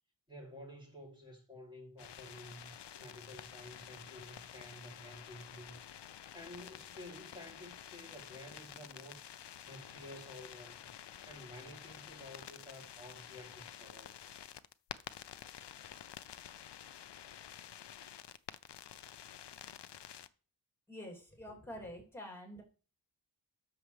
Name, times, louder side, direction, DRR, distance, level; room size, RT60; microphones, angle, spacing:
voice 1, 0.3-5.8 6.3-9.2 9.6-10.9 11.2-14.1, left 1 dB, 10° right, 3.0 m, -52 dB
sound 1, 2.0-20.3, left 10 dB, 65° left, 0.6 m, -50 dB
voice 2, 20.9-22.6, left 1 dB, 5° left, 3.0 m, -47 dB
10.5 x 6.8 x 3.3 m
wide cardioid pair, 115°, 45 cm